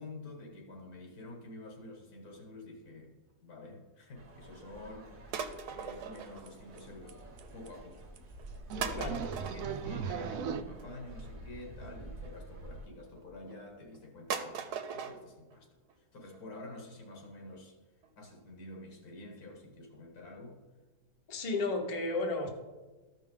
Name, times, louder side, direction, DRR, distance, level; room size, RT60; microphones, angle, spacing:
voice 1, 0.0-3.1 3.4-5.4 5.7-8.0 8.7-9.1 9.4-15.7 16.0-17.8 18.2-20.6, left 2 dB, 75° left, 1.9 m, -48 dB
sound 1, 4.2-12.9, right 1 dB, 35° right, 1.2 m, -48 dB
sound 2, 5.3-7.0 7.3-7.8 8.4-8.5 8.8-12.4 13.1-13.6 13.9-14.0 14.3-15.2 15.5-15.6 15.9-16.0 16.3-16.4 16.7-16.8 17.1-17.2 17.5-17.6 18.0-18.1 18.4-18.5, right 7 dB, 90° right, 1.3 m, -40 dB
sound 3, 5.5-5.6 5.8-6.2 6.5-6.6 6.8-6.9 7.1-7.2 7.4-7.7 8.2-8.3 8.7-10.6, right 7 dB, 70° right, 0.9 m, -38 dB
voice 2, 21.3-22.5, left 2 dB, 30° left, 0.9 m, -33 dB
13.5 x 5.5 x 3.7 m
omnidirectional pair, 1.6 m